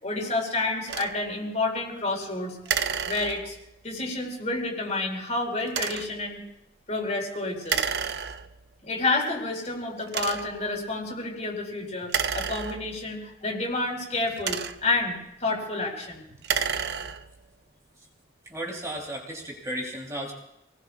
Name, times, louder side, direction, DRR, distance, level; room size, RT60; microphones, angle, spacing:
voice 1, 0.0-3.5 3.8-6.4 6.9-7.8 8.8-16.2 16.8-16.9, left 2 dB, 40° left, 1 dB, 4.6 m, -29 dB
sound 1, 0.9-1.2 2.7-3.7 5.7-6.2 7.7-8.7 9.3-9.4 10.1-10.7 12.0-13.2 14.1-15.0 16.3-17.4, right 6 dB, 60° right, 0.7 m, -30 dB
voice 2, 18.5-20.3, right 1 dB, 15° right, -2 dB, 3.1 m, -34 dB
28.5 x 19.5 x 2.4 m, 0.81 s
head